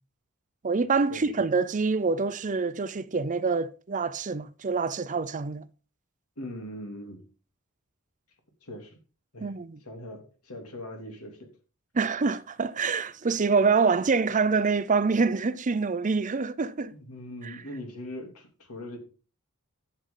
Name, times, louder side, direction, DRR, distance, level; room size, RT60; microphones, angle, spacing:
voice 1, 0.6-5.6 9.4-9.8 11.9-16.9 17.4-17.6, right 4 dB, 35° right, 0.5 m, -26 dB
voice 2, 6.4-7.2 8.6-9.0 9.3-9.5 9.8-11.5 16.9-19.0, left 1 dB, 80° left, 3.0 m, -41 dB
11.5 x 7.9 x 3.8 m
head